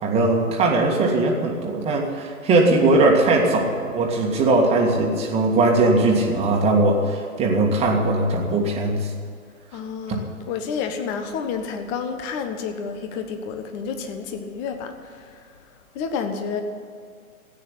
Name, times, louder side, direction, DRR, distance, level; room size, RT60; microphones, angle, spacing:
voice 1, 0.0-9.1 10.1-10.2, right 2 dB, 15° right, 0 dB, 1.9 m, -20 dB
voice 2, 9.7-16.6, left 6 dB, 20° left, 7 dB, 1.2 m, -30 dB
14.5 x 9.4 x 9.9 m, 2.3 s
figure-of-eight pair, 135°, 43 cm